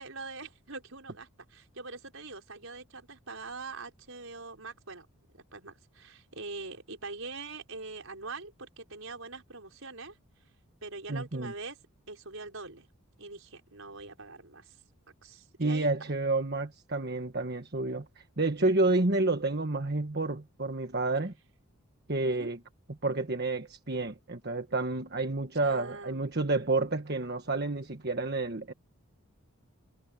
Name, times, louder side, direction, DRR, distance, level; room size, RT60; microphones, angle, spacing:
voice 1, 0.0-5.1 5.3-10.2 10.8-11.8 12.1-12.9 13.2-14.8 15.2-16.1 22.2-22.5 25.5-26.3, right 3 dB, 65° right, 5.5 m, -43 dB
voice 2, 11.1-11.5 15.6-21.3 22.1-22.6 23.0-28.7, right 2 dB, 45° right, 1.4 m, -29 dB
head